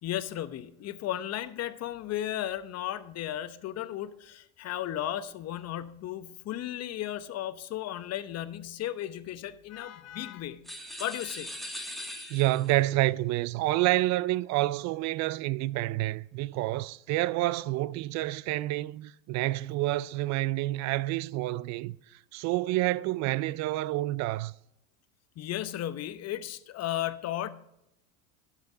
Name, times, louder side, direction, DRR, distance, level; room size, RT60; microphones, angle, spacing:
voice 1, 0.0-10.7 11.0-11.6 25.4-27.5, left 12 dB, 40° left, 0.8 m, -35 dB
sound 1, 10.6-12.8, left 1 dB, ahead, 1.8 m, -40 dB
voice 2, 12.3-22.0 22.3-24.5, right 17 dB, 45° right, 0.4 m, -28 dB
11.5 x 7.6 x 3.9 m
hypercardioid pair, 95°, 40 cm